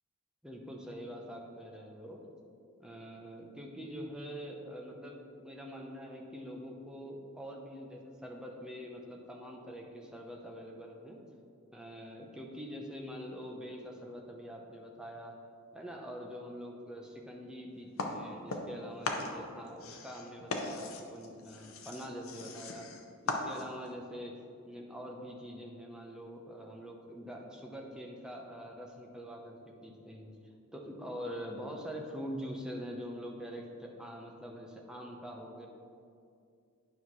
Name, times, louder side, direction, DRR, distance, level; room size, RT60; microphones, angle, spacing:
voice 1, 0.4-2.2 2.8-11.2 11.7-15.3 15.7-22.9 23.2-30.4 30.7-35.7, equal, 5° right, 0 dB, 0.7 m, -44 dB
sound 1, 18.0-18.8 19.0-23.9, left 3 dB, 65° left, 0.7 m, -38 dB
9.5 x 5.6 x 3.1 m, 2.4 s
head